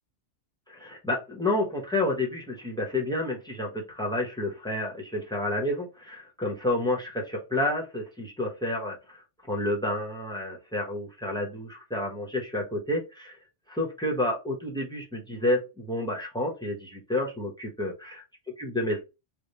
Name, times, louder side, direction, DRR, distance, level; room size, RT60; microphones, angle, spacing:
voice 1, 0.7-9.2 9.5-13.4 13.7-18.2 18.6-19.0, left 1 dB, 5° left, -1 dB, 0.8 m, -30 dB
3.4 x 2.1 x 4.0 m, 0.27 s
omnidirectional pair, 1.2 m